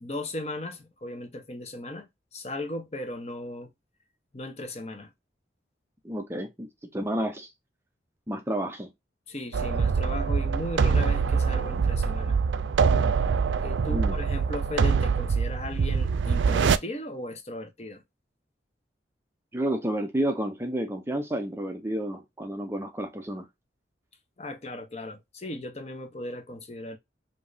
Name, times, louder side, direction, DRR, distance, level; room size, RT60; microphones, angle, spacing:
voice 1, 0.0-3.7 4.3-5.1 9.3-12.4 13.6-18.0 24.4-27.0, left 1 dB, 35° left, 0.9 m, -37 dB
voice 2, 6.0-7.5 8.3-8.9 13.9-14.2 19.5-23.5, right 1 dB, 15° right, 0.6 m, -30 dB
sound 1, 9.5-16.8, right 5 dB, 85° right, 0.4 m, -24 dB
5.1 x 2.8 x 2.6 m
head